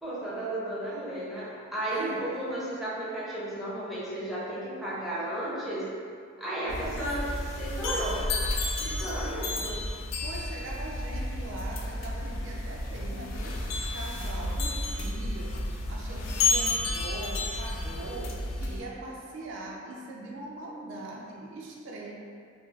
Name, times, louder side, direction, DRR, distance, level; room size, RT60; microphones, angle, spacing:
voice 1, 0.0-5.9 6.4-7.2 7.6-8.2 8.6-9.8, right 1 dB, ahead, -9 dB, 0.5 m, -34 dB
voice 2, 1.9-2.6 6.6-7.4 9.0-9.5 10.2-13.6 13.9-22.1, right 2 dB, 65° right, -2 dB, 0.3 m, -41 dB
sound 1, 6.7-18.8, left 2 dB, 70° left, 0.3 m, -31 dB
2.3 x 2.2 x 3.2 m, 2.2 s
head